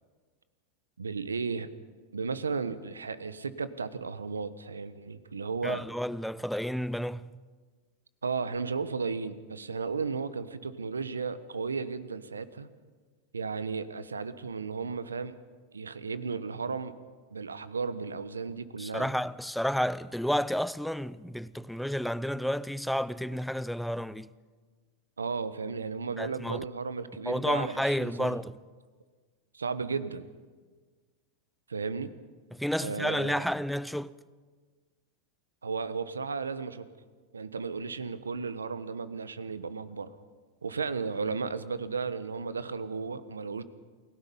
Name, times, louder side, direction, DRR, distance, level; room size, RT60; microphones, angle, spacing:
voice 1, 1.0-1.7 2.1-5.8 8.2-12.7 13.3-15.4 15.7-16.9 17.3-19.1 25.2-28.4 29.5-30.2 31.7-32.1 32.8-33.5 35.6-36.9 37.3-40.1 40.6-43.6, right 5 dB, 90° right, 1.1 m, -34 dB
voice 2, 5.6-7.3 18.8-24.3 26.2-26.6 27.3-28.5 32.5-34.2, equal, ahead, 0.6 m, -31 dB
28.5 x 17.0 x 5.5 m
hypercardioid pair, 95°, 0 cm